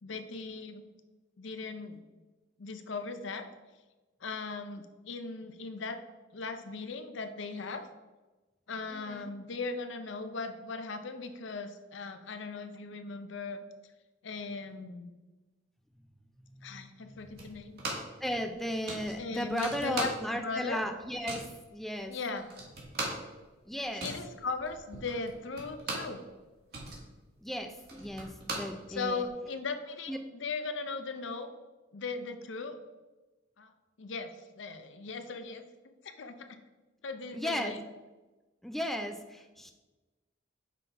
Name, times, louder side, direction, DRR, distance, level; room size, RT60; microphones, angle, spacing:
voice 1, 0.0-0.8 1.4-2.0 2.6-3.5 4.2-6.0 6.3-7.9 8.7-13.6 14.2-15.1 16.6-17.8 19.2-20.8 22.1-22.5 24.0-26.2 28.9-31.5 31.9-32.8 33.6-33.7 34.0-35.6 36.0-36.6 37.0-37.8, left 4 dB, 65° left, 8 dB, 0.6 m, -38 dB
voice 2, 8.9-9.3 16.5-17.3 17.9-22.2 23.6-24.1 27.4-29.3 30.1-30.2 37.3-37.7 38.6-39.7, equal, ahead, 5 dB, 0.4 m, -36 dB
sound 1, 17.4-18.2 18.5-18.6 18.9-20.5 20.8-21.6 22.1-22.2 22.4-26.2 26.5-29.3, right 2 dB, 55° right, 1.5 m, -39 dB
6.0 x 3.8 x 4.5 m, 1.2 s
head